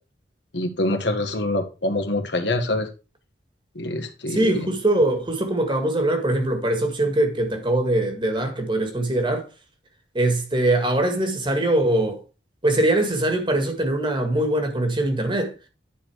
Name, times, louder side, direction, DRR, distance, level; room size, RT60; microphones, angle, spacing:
voice 1, 0.5-2.9 3.7-4.7, left 1 dB, 80° left, 1.7 m, -25 dB
voice 2, 4.3-9.5 10.1-12.2 12.6-15.5, right 1 dB, 25° right, 1.9 m, -22 dB
10.0 x 4.6 x 4.8 m
head